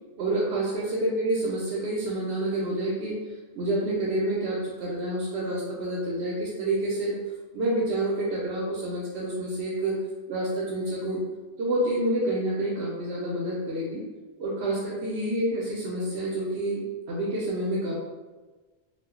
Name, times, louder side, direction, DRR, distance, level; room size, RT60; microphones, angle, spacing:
voice 1, 0.2-3.2 3.5-7.2 7.5-10.0 10.3-11.2 11.6-14.0 14.4-17.9, right 1 dB, 85° right, -5 dB, 0.8 m, -28 dB
2.3 x 2.1 x 3.5 m, 1.3 s
omnidirectional pair, 1.1 m